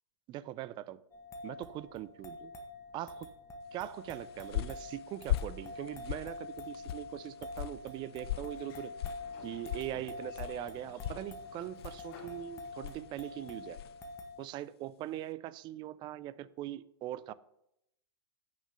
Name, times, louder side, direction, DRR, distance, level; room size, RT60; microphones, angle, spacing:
voice 1, 0.3-1.0 1.4-2.5 2.9-3.3 3.7-8.9 9.4-13.8 14.4-17.3, right 13 dB, 35° right, 0.5 m, -41 dB
sound 1, 1.1-14.5, left 3 dB, 20° left, 1.7 m, -46 dB
sound 2, 4.0-14.1, left 13 dB, 65° left, 0.5 m, -41 dB
Sliding door, 8.5-13.2, left 4 dB, 50° left, 2.3 m, -57 dB
8.7 x 6.4 x 6.7 m
hypercardioid pair, 110°, 14 cm